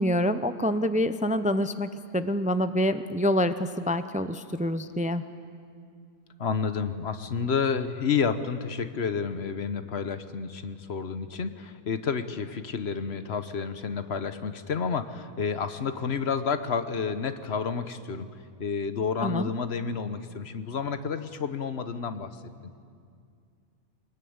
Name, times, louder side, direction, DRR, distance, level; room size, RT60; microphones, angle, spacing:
voice 1, 0.0-5.2 19.2-19.5, equal, 10° right, 11 dB, 0.5 m, -26 dB
voice 2, 6.4-18.3 18.6-22.3, left 6 dB, 65° left, 10 dB, 1.3 m, -30 dB
24.0 x 20.5 x 9.5 m, 2.3 s
omnidirectional pair, 1.2 m